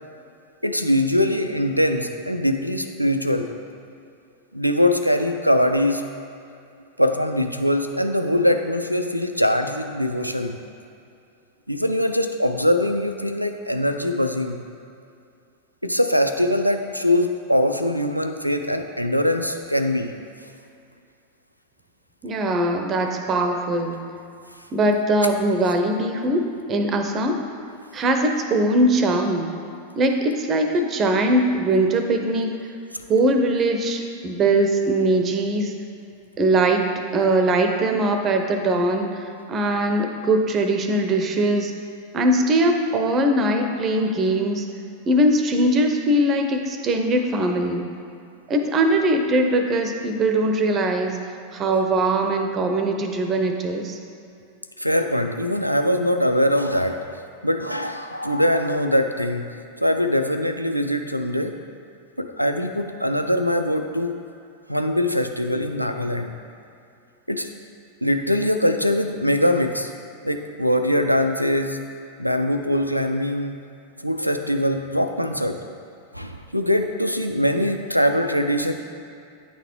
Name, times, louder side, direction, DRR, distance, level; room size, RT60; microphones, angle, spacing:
voice 1, 0.6-3.5 4.5-6.1 7.0-10.6 11.7-14.6 15.8-20.1 54.8-59.5 59.8-61.5 62.2-64.1 64.7-66.4 67.3-67.5 68.0-69.9 70.2-71.8 72.2-73.6 74.0-75.6 76.1-78.7, left 1 dB, 90° right, 6 dB, 0.4 m, -22 dB
voice 2, 22.2-24.0 24.7-27.4 27.9-29.5 30.0-32.6 33.1-35.7 36.4-36.9 37.1-41.7 42.1-44.6 45.1-47.9 48.5-51.2 51.5-54.0, right 1 dB, 30° right, 5 dB, 0.7 m, -21 dB
9.4 x 4.0 x 4.5 m, 2.5 s
figure-of-eight pair, 90°, 0 cm